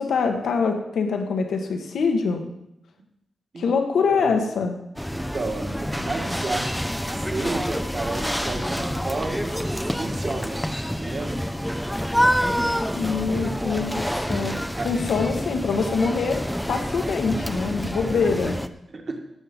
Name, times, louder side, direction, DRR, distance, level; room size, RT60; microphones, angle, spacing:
voice 1, 0.0-2.4 3.6-4.8 12.9-18.6, left 5 dB, 80° left, 4 dB, 1.5 m, -24 dB
voice 2, 4.1-4.5 5.1-10.6 10.9-11.4 14.8-14.9 17.7-17.8 18.9-19.2, right 3 dB, 35° right, 2 dB, 1.7 m, -32 dB
sound 1, 5.0-18.7, equal, ahead, 0.5 m, -27 dB
17.0 x 7.5 x 5.4 m, 0.83 s
wide cardioid pair, 170°, 0 cm